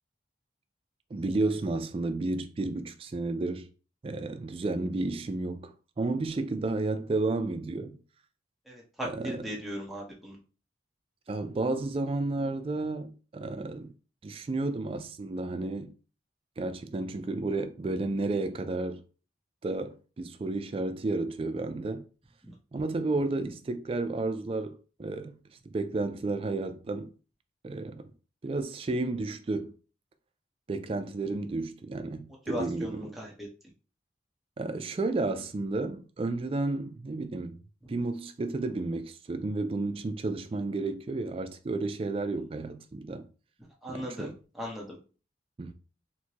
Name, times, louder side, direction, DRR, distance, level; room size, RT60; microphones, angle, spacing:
voice 1, 1.1-3.7 4.0-8.0 9.0-9.5 11.3-13.9 14.2-15.9 16.6-19.0 19.6-22.0 22.7-25.4 25.7-27.1 27.6-28.1 28.4-29.7 30.7-33.0 34.6-37.6 37.9-43.3 43.9-44.3 45.6-45.7, right 2 dB, 30° right, 0.3 m, -32 dB
voice 2, 8.7-10.4 32.5-33.5 37.8-37.9 43.8-45.0, equal, ahead, 0.9 m, -38 dB
4.4 x 2.2 x 2.9 m
head